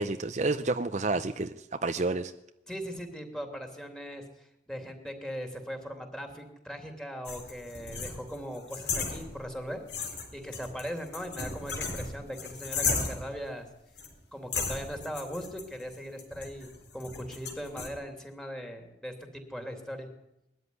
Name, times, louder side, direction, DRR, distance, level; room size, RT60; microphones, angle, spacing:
voice 1, 0.0-2.3, right 3 dB, 40° right, 9 dB, 0.7 m, -30 dB
voice 2, 2.7-13.7 14.3-20.1, equal, 5° left, 4 dB, 2.9 m, -39 dB
sound 1, 7.3-9.6 9.9-13.4 14.0-14.1 14.5-17.9, left 4 dB, 75° left, 4.2 m, -35 dB
21.5 x 13.5 x 9.8 m, 0.86 s
head